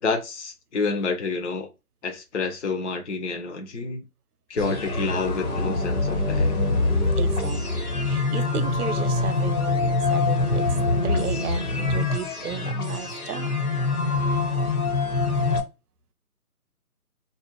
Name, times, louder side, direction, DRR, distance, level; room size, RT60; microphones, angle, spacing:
voice 1, 0.0-1.7 2.0-4.1 4.5-6.5, left 4 dB, 50° left, 0.5 m, -28 dB
sound 1, 4.6-15.6, left 3 dB, 65° left, 1.3 m, -24 dB
voice 2, 7.2-10.7 11.0-13.5, right 7 dB, 70° right, 0.6 m, -34 dB
2.4 x 2.1 x 2.9 m
figure-of-eight pair, 160°, 46 cm